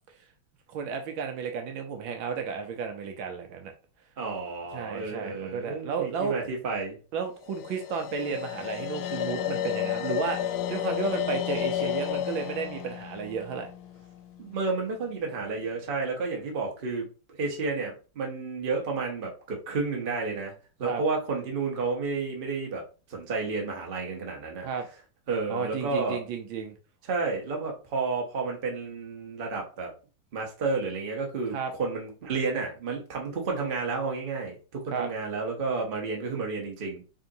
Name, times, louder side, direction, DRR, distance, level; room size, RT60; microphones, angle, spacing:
voice 1, 0.7-3.7 4.7-6.3 7.1-13.7 20.8-21.0 24.6-24.9 25.5-26.7 31.5-31.7 34.9-35.1, right 6 dB, 75° right, 1.3 m, -33 dB
voice 2, 4.2-7.0 14.4-17.1 17.4-20.5 20.8-22.8 23.1-24.7 25.3-26.2 27.1-29.9 30.3-37.0, right 4 dB, 50° right, 0.6 m, -31 dB
sound 1, 7.4-14.6, left 10 dB, 80° left, 1.4 m, -32 dB
3.8 x 3.5 x 2.6 m
omnidirectional pair, 2.4 m